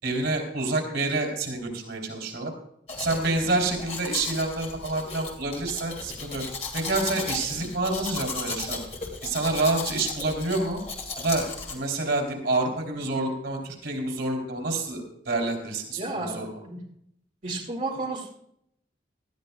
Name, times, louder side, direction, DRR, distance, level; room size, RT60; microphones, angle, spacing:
voice 1, 0.0-2.5 3.0-6.4 6.7-8.8 9.2-10.8 11.2-16.5, right 2 dB, 85° right, 2 dB, 3.4 m, -28 dB
Domestic sounds home sounds, 2.9-11.7, left 4 dB, 35° left, 2.3 m, -36 dB
voice 2, 15.9-16.8 17.4-18.3, right 2 dB, 45° right, -2 dB, 2.4 m, -32 dB
18.5 x 13.0 x 2.3 m, 0.72 s
head